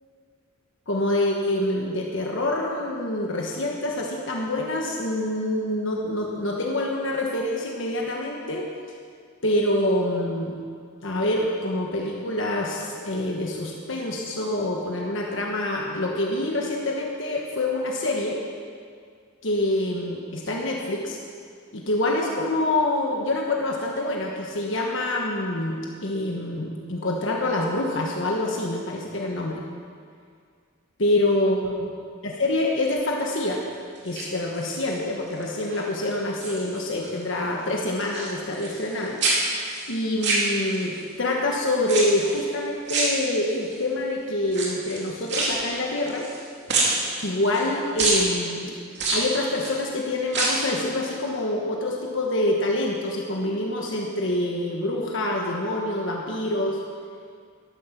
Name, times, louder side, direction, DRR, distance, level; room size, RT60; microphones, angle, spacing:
voice 1, 0.9-8.7 9.4-10.6 11.0-18.4 19.4-21.2 21.7-29.6 31.0-31.9 32.2-33.6 34.0-39.2 39.9-46.3 47.2-48.7 49.1-56.8, left 1 dB, 60° left, -1 dB, 1.4 m, -26 dB
sound 1, 34.0-34.9 35.4-35.8 36.1-37.1 37.4-38.9 39.2-41.0 41.8-42.4 42.9-43.7 44.5-46.4 46.7-47.7 48.0-48.3 48.9-49.8 50.2-50.7 51.1-51.2, right 3 dB, 55° right, 2.8 m, -26 dB
13.0 x 12.0 x 6.0 m, 2.2 s
head